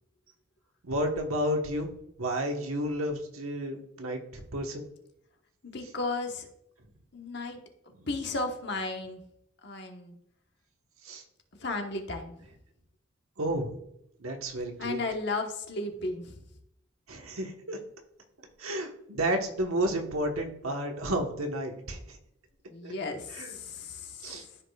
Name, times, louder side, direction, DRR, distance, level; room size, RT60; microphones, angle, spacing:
voice 1, 0.8-1.9 2.2-4.8 11.0-11.2 13.4-13.8 14.2-15.0 17.1-17.8 18.6-22.2 22.8-22.9 23.4-23.5 24.2-24.4, right 1 dB, 85° right, 3 dB, 1.3 m, -31 dB
voice 2, 5.6-6.5 7.1-7.6 8.1-9.2 9.6-10.2 11.6-12.4 14.8-16.4 22.7-24.6, left 3 dB, 55° left, 3 dB, 1.2 m, -34 dB
13.5 x 5.2 x 2.4 m, 0.77 s
head